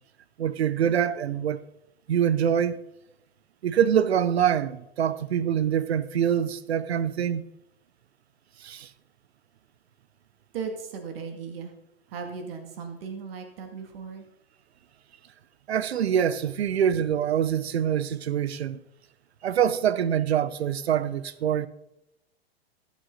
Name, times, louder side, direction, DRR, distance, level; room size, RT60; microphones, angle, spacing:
voice 1, 0.4-1.6 2.1-2.8 3.6-7.4 8.6-8.9 15.7-18.8 19.4-21.7, right 9 dB, 80° right, 0.7 m, -25 dB
voice 2, 10.5-11.7 12.1-14.2, right 5 dB, 65° right, 2.6 m, -37 dB
13.5 x 8.4 x 4.1 m
hypercardioid pair, 105°, 31 cm